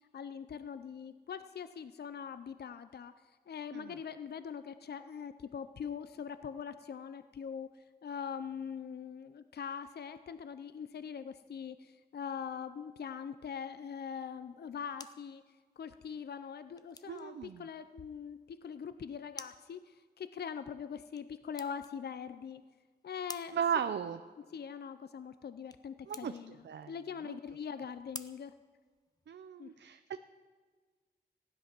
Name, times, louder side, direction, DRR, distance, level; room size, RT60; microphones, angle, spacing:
voice 1, 0.1-15.4 15.8-22.6 23.0-23.6 24.5-26.6 26.9-28.5 29.6-29.7, left 7 dB, 65° left, 12 dB, 0.5 m, -42 dB
sound 1, 14.5-29.5, left 2 dB, 20° left, 0.7 m, -55 dB
voice 2, 17.1-17.7 23.5-24.2 26.1-26.3 26.6-26.9 27.2-27.4 29.3-30.2, right 8 dB, 85° right, 10 dB, 0.5 m, -36 dB
15.5 x 10.5 x 5.9 m, 1.4 s
wide cardioid pair, 90°, 18 cm